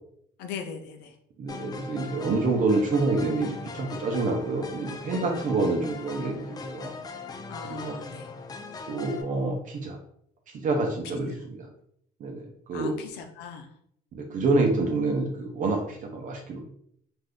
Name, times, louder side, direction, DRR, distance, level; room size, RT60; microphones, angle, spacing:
voice 1, 0.4-1.1 7.5-8.3 12.7-13.7, left 6 dB, 90° left, 5 dB, 0.5 m, -39 dB
voice 2, 1.4-7.0 7.6-8.0 8.9-10.0 10.5-11.7 12.2-12.9 14.1-16.6, right 3 dB, 50° right, 2 dB, 0.6 m, -27 dB
sound 1, 1.5-9.2, left 4 dB, 25° left, 0.3 m, -40 dB
2.5 x 2.3 x 3.5 m, 0.69 s
cardioid pair, 110°, 17 cm